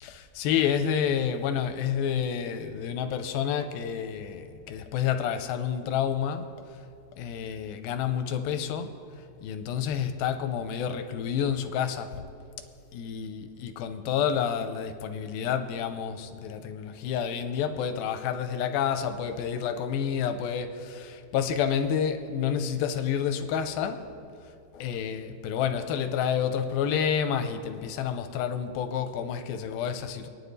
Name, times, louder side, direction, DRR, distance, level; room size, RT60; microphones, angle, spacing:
voice 1, 0.0-6.5 7.2-9.0 9.4-12.2 12.9-24.1 24.7-30.3, left 8 dB, 85° left, 2.3 m, -29 dB
25.0 x 9.8 x 2.7 m
omnidirectional pair, 4.4 m